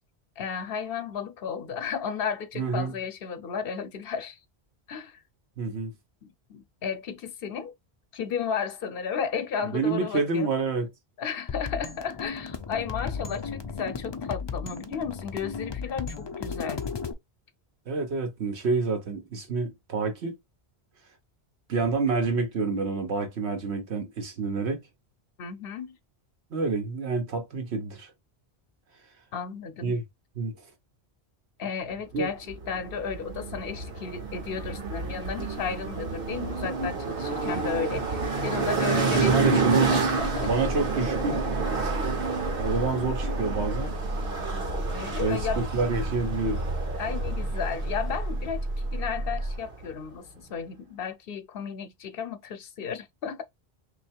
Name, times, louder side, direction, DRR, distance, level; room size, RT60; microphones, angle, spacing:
voice 1, 0.4-4.4 4.9-5.2 6.2-7.7 8.1-10.5 11.2-16.8 25.4-26.0 29.3-30.0 31.6-40.7 44.9-45.7 47.0-53.4, left 6 dB, 65° left, 0.8 m, -34 dB
voice 2, 2.6-3.0 5.6-5.9 9.7-10.9 17.9-20.3 21.7-24.8 26.5-28.1 29.8-30.0 30.4-30.5 32.1-32.3 39.1-39.8 40.4-41.4 42.6-43.9 45.2-46.6, right 4 dB, 85° right, 1.4 m, -28 dB
sound 1, 11.5-17.1, left 5 dB, 40° left, 0.4 m, -35 dB
sound 2, 32.5-49.9, right 4 dB, 60° right, 1.2 m, -29 dB
sound 3, 40.2-49.6, right 1 dB, 35° right, 0.4 m, -33 dB
3.2 x 2.8 x 4.4 m
omnidirectional pair, 1.1 m